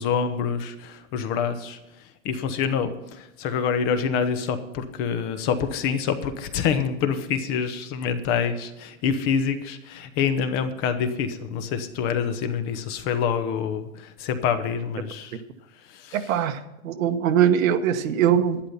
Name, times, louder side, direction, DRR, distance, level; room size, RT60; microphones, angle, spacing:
voice 1, 0.0-1.8 2.2-15.4 15.9-16.2, left 7 dB, 30° left, 9 dB, 1.0 m, -26 dB
voice 2, 16.1-18.6, right 9 dB, 75° right, 8 dB, 1.4 m, -22 dB
11.5 x 10.0 x 5.6 m, 0.92 s
supercardioid pair, 155°, 41 cm